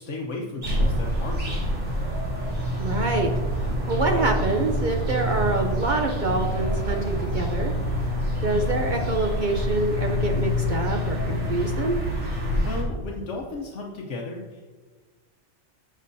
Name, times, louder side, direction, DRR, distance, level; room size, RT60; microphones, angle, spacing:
voice 1, 0.0-1.8 12.5-14.7, left 2 dB, 75° left, 0 dB, 1.1 m, -35 dB
sound 1, 0.6-12.8, equal, 75° right, 2.7 m, -26 dB
voice 2, 2.8-3.3 3.9-7.7 8.4-12.0, right 2 dB, 45° right, 3 dB, 0.7 m, -26 dB
12.0 x 7.4 x 2.7 m, 1.4 s
omnidirectional pair, 1.2 m